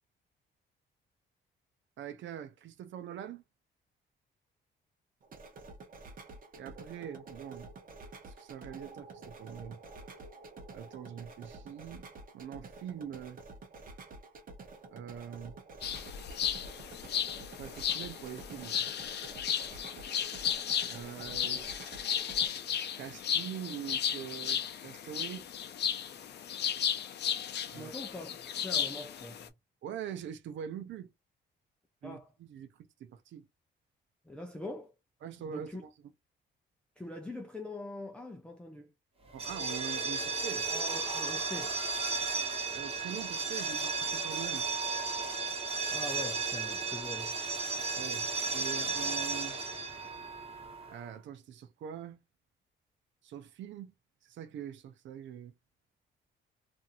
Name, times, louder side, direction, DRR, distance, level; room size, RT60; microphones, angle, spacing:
voice 1, 2.0-3.4 6.6-7.7 8.3-9.8 10.7-12.0 12.3-13.4 14.9-15.6 17.6-18.8 20.9-21.7 23.0-25.5 27.7-27.9 29.8-31.1 32.0-32.7 33.0-33.5 35.2-35.9 39.3-40.7 42.3-42.4 42.7-44.7 48.0-49.6 50.9-52.2 53.2-53.9 54.2-55.5, right 9 dB, 70° right, 0.6 m, -43 dB
sound 1, 5.2-22.5, right 3 dB, 45° right, 0.9 m, -49 dB
sound 2, 15.8-29.5, left 8 dB, 60° left, 0.5 m, -34 dB
voice 2, 27.7-28.4 28.6-29.5 32.0-32.3 34.3-34.9 35.5-35.8 37.0-38.9 40.7-41.8 45.9-47.3, left 2 dB, 5° left, 0.5 m, -43 dB
sound 3, 39.3-51.0, right 4 dB, 30° right, 1.2 m, -34 dB
2.6 x 2.5 x 2.5 m
cardioid pair, 90°, 20 cm